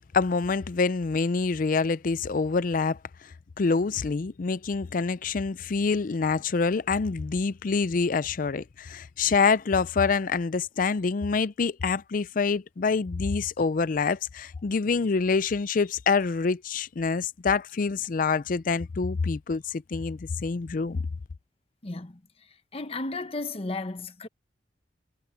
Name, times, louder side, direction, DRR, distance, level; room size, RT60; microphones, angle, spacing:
voice 1, 0.1-3.0 3.2-21.1, left 4 dB, 50° left, 0.4 m, -26 dB
voice 2, 21.8-22.2 22.7-24.3, left 2 dB, 35° left, 1.0 m, -34 dB
head